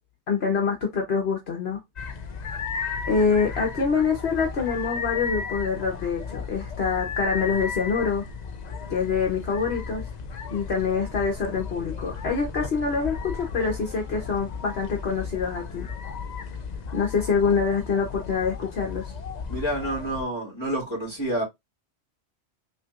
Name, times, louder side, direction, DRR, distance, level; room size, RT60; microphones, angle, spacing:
voice 1, 0.3-1.8 3.0-8.2 8.9-10.0 10.5-15.9 16.9-19.1, left 5 dB, 65° left, 1.3 m, -25 dB
sound 1, 2.0-20.2, left 5 dB, 45° left, 0.7 m, -35 dB
voice 2, 19.5-21.4, right 1 dB, 25° left, 2.6 m, -28 dB
5.6 x 3.0 x 2.5 m
omnidirectional pair, 1.1 m